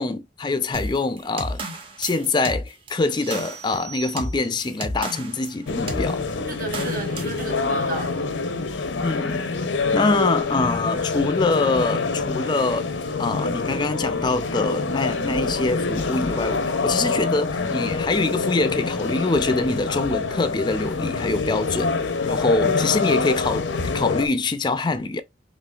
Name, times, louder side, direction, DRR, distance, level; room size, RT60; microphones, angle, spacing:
voice 1, 0.0-1.6 2.0-6.2 9.0-9.5 9.9-12.9 13.2-21.9 22.2-23.6 23.9-25.2, left 3 dB, 25° left, 0.4 m, -24 dB
sound 1, 0.7-5.5 5.9-6.1 6.7-7.4, right 1 dB, 30° right, 0.8 m, -32 dB
sound 2, 3.3-4.8, right 9 dB, 70° right, 0.7 m, -41 dB
sound 3, 5.7-24.3, left 4 dB, 85° left, 0.6 m, -26 dB
voice 2, 6.5-8.3 22.6-23.0, right 2 dB, 50° right, 1.0 m, -34 dB
4.3 x 3.1 x 2.3 m
head